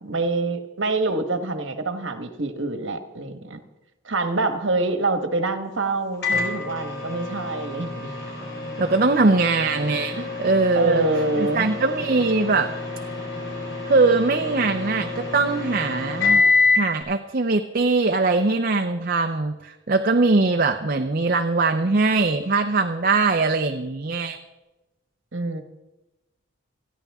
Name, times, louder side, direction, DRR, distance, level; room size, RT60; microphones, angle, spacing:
voice 1, 0.0-3.6 4.0-8.2 10.1-10.3 10.7-11.7 25.3-25.6, right 2 dB, 65° right, 7 dB, 1.3 m, -26 dB
Microwave oven, 6.2-17.0, left 4 dB, 55° left, 3.7 m, -27 dB
voice 2, 8.8-11.0 11.4-12.7 13.9-16.4 16.8-24.4, right 3 dB, 45° right, 6 dB, 0.6 m, -21 dB
28.0 x 10.5 x 3.6 m, 1.0 s
head